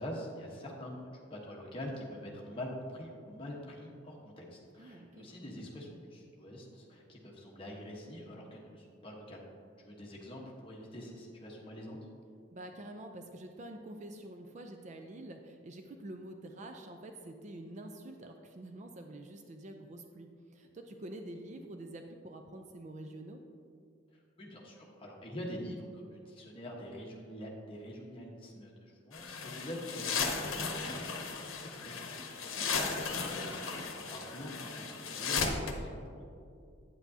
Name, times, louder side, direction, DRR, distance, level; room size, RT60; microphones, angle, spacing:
voice 1, 0.0-9.5 9.8-12.0 24.1-31.3 31.7-36.3, equal, 25° left, -2 dB, 1.1 m, -45 dB
voice 2, 4.8-5.3 12.5-23.4 32.5-33.1, right 1 dB, 35° right, 5 dB, 0.4 m, -47 dB
sound 1, 29.1-35.7, left 5 dB, 85° left, 0.8 m, -36 dB
8.9 x 8.2 x 2.7 m, 2.4 s
head